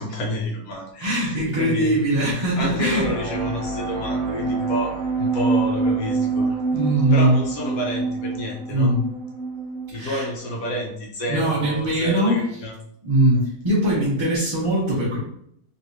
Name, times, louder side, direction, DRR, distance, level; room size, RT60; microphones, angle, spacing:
voice 1, 0.0-2.0 2.6-6.5 7.1-9.0 9.9-12.7, equal, 60° left, -2 dB, 1.3 m, -29 dB
voice 2, 1.0-3.1 6.7-7.4 8.7-9.1 9.9-10.3 11.3-12.4 13.0-15.2, right 1 dB, 25° right, -8 dB, 0.7 m, -21 dB
sound 1, 2.6-10.2, right 3 dB, 80° left, 1.3 m, -26 dB
3.3 x 3.1 x 2.7 m, 0.70 s
omnidirectional pair, 1.8 m